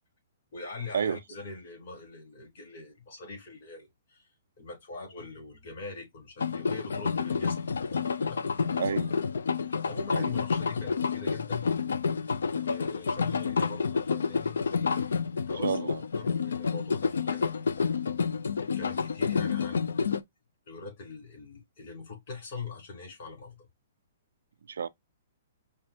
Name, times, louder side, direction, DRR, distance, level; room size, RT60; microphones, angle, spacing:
voice 1, 0.5-4.3 4.6-8.8 9.8-11.7 12.5-18.0 18.7-20.1 20.7-23.7, left 4 dB, 55° left, 3.4 m, -43 dB
sound 1, 6.4-20.2, left 5 dB, 75° left, 0.3 m, -29 dB
voice 2, 8.8-9.1 10.1-10.3 15.6-16.0 24.7-24.9, right 7 dB, 75° right, 0.3 m, -30 dB
5.4 x 2.2 x 2.8 m
hypercardioid pair, 125°, 0 cm